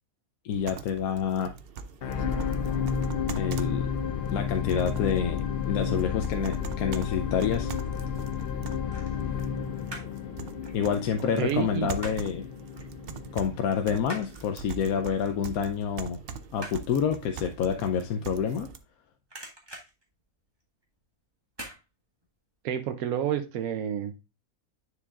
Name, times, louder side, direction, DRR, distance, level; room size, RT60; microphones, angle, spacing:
voice 1, 0.4-1.5 3.4-3.9 4.3-7.7 10.7-12.5 13.3-16.2 16.5-18.7, left 7 dB, 90° left, 6 dB, 1.1 m, -28 dB
sound 1, 0.5-18.8, right 5 dB, 55° right, 0.7 m, -43 dB
sound 2, 2.0-14.4 15.0-15.1, left 7 dB, 55° left, 0.8 m, -32 dB
sound 3, 7.8-8.0 8.9-10.2 10.5-12.4 12.8-12.9 13.3-18.9 19.2-20.9 21.5-21.8 22.2-22.3, right 1 dB, 20° right, 1.6 m, -45 dB
voice 2, 11.4-11.9 22.6-24.2, right 9 dB, 85° right, 7 dB, 1.1 m, -29 dB
9.9 x 4.8 x 2.4 m, 0.28 s
omnidirectional pair, 1.5 m